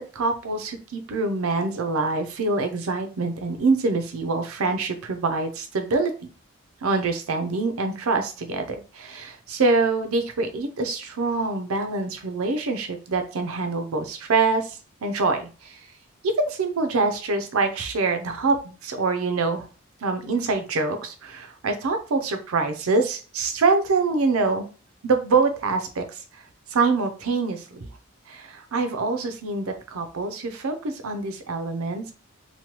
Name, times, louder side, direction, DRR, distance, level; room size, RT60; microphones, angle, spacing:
voice 1, 0.0-6.1 6.8-15.8 16.2-19.7 20.0-24.7 25.0-26.2 26.7-27.9 28.3-32.1, right 3 dB, 85° right, 6 dB, 0.6 m, -25 dB
3.1 x 2.2 x 2.9 m, 0.36 s
head